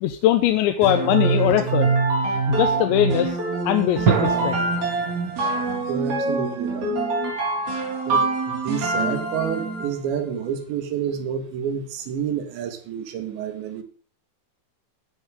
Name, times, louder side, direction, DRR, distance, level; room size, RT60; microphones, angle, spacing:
voice 1, 0.0-1.9 2.2-3.4 3.6-4.6, left 13 dB, 90° left, 8 dB, 3.1 m, -21 dB
sound 1, 0.8-10.0, right 3 dB, 40° right, 5.7 m, -24 dB
sound 2, 4.0-7.5, right 9 dB, 65° right, 1.9 m, -28 dB
voice 2, 5.9-7.0 8.1-13.8, right 7 dB, 80° right, 7 dB, 4.1 m, -29 dB
16.5 x 11.0 x 3.8 m, 0.42 s
omnidirectional pair, 5.1 m